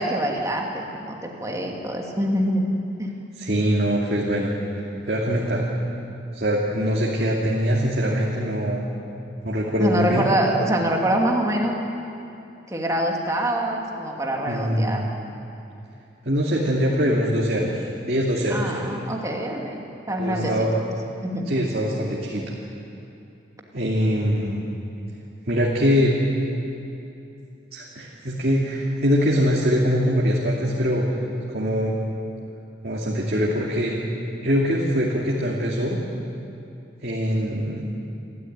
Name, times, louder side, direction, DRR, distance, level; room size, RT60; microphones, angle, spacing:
voice 1, 0.0-2.7 3.0-3.1 9.8-11.9 12.7-15.0 18.5-20.7 21.2-21.5, right 1 dB, 15° right, 0 dB, 2.6 m, -25 dB
voice 2, 3.4-4.5 4.8-5.7 6.3-8.8 9.4-10.2 14.5-15.1 16.2-19.0 20.2-20.7 21.5-22.5 23.7-24.6 25.5-26.1 27.7-31.0 31.5-31.9 32.8-34.0 34.4-36.0 37.0-37.8, equal, 55° right, -4 dB, 2.6 m, -23 dB
28.5 x 13.5 x 9.5 m, 2.7 s
head